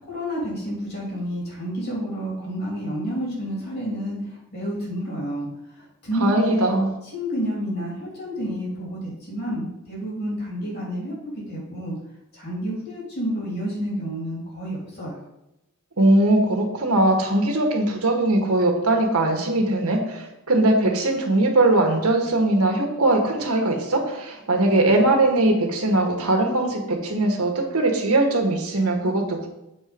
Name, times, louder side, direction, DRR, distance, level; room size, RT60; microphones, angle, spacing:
voice 1, 0.0-5.5 5.8-6.7 7.1-11.9 12.4-15.2, equal, 45° left, -4 dB, 3.3 m, -30 dB
voice 2, 6.2-6.9 16.0-29.5, right 2 dB, 85° right, 1 dB, 1.7 m, -20 dB
7.9 x 4.5 x 5.3 m, 0.89 s
head